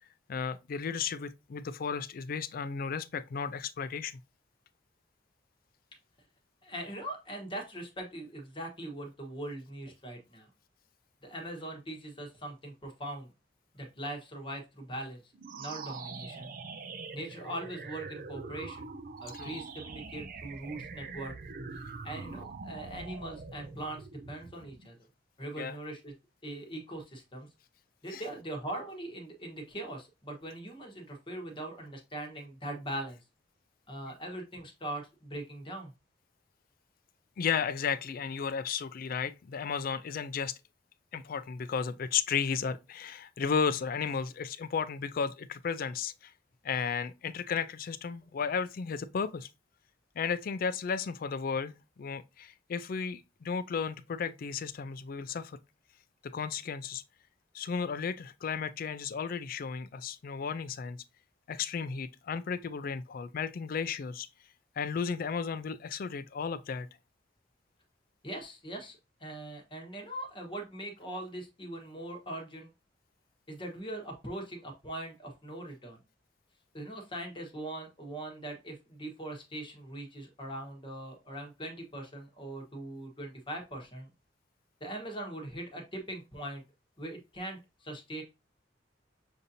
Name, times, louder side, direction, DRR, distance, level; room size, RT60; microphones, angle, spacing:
voice 1, 0.3-4.2 19.3-19.6 22.3-22.4 25.6-25.8 28.1-28.2 37.4-40.6 41.1-46.3 46.6-49.5 50.2-55.6 56.2-57.0 57.5-61.0 61.5-64.3 64.8-66.9, left 6 dB, 50° left, 0.4 m, -34 dB
voice 2, 6.6-10.5 11.2-13.3 13.7-15.3 15.6-16.5 17.1-18.9 19.2-21.4 22.0-25.0 25.4-26.1 26.4-27.5 28.0-33.2 33.9-35.9 68.2-72.7 73.5-76.0 76.7-84.1 84.8-86.6 87.0-88.2, right 1 dB, 30° left, 1.2 m, -41 dB
sound 1, 15.3-24.9, right 4 dB, 50° right, 0.4 m, -44 dB
6.5 x 2.7 x 2.7 m
head